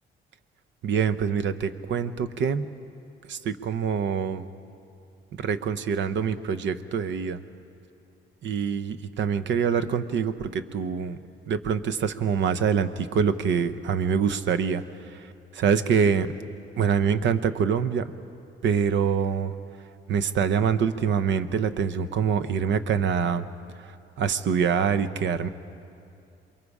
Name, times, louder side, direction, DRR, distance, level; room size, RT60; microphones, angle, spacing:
voice 1, 0.8-2.7 3.3-4.5 5.4-7.4 8.4-11.2 11.5-14.8 15.5-16.3 16.8-18.1 18.6-19.5 20.1-23.5 24.2-25.5, right 6 dB, 70° right, 12 dB, 0.9 m, -25 dB
28.0 x 22.5 x 4.9 m, 2.5 s
cardioid pair, 90°, 20 cm